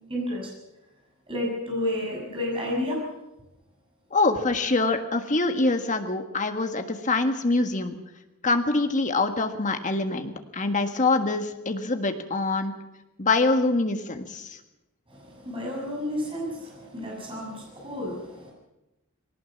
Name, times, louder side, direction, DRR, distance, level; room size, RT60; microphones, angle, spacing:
voice 1, 0.1-0.5 1.3-3.0 15.1-18.5, left 1 dB, 25° right, -2 dB, 6.8 m, -31 dB
voice 2, 4.1-8.0 8.4-12.7 13.2-14.6, left 3 dB, 35° left, 6 dB, 1.7 m, -25 dB
20.0 x 18.0 x 7.4 m, 0.96 s
head